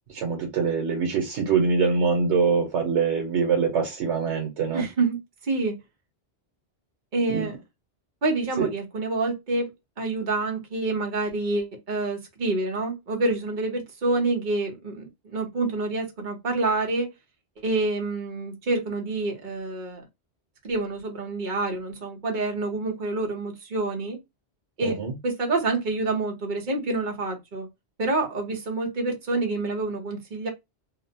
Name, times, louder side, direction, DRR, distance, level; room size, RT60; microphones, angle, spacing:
voice 1, 0.1-4.8 7.3-7.5 8.6-8.7 24.8-25.1, right 5 dB, 90° right, 1.1 m, -24 dB
voice 2, 4.7-5.8 7.1-7.6 8.2-9.7 10.0-17.1 17.6-20.0 20.6-24.2 24.8-25.0 25.2-27.7 28.0-30.5, right 3 dB, 45° right, 0.9 m, -27 dB
2.8 x 2.0 x 2.7 m
omnidirectional pair, 1.1 m